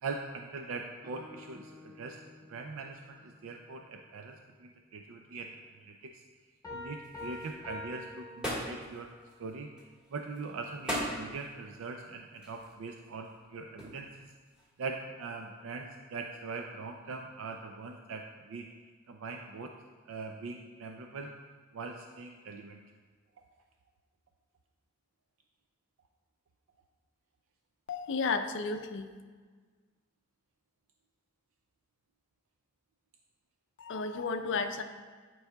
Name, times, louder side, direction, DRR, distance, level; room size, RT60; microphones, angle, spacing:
voice 1, 0.0-2.2 2.5-5.5 5.8-6.2 6.7-9.1 9.4-9.7 10.1-14.3 14.8-18.7 19.1-19.7 20.1-21.3 21.7-22.8, right 4 dB, 65° right, 3 dB, 0.4 m, -42 dB
Guitar, 1.0-4.7, left 2 dB, 40° right, 1.0 m, -56 dB
Piano, 6.6-9.1, left 2 dB, 15° left, 0.9 m, -45 dB
sound 1, 7.0-14.9, equal, 5° right, 1.5 m, -41 dB
voice 2, 27.9-29.1 33.8-34.8, left 4 dB, 60° left, 7 dB, 0.5 m, -33 dB
10.5 x 4.7 x 2.3 m, 1.5 s
head